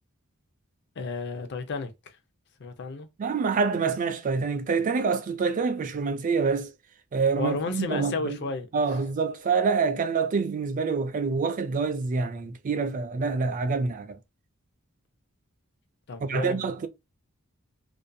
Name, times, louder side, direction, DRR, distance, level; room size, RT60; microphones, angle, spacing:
voice 1, 1.0-1.9 2.6-3.1 7.4-8.7 16.1-16.7, left 3 dB, 55° left, 0.5 m, -32 dB
voice 2, 3.2-6.7 7.1-8.4 8.7-14.2 16.2-16.9, right 4 dB, 40° right, 0.3 m, -26 dB
2.5 x 2.2 x 2.5 m
head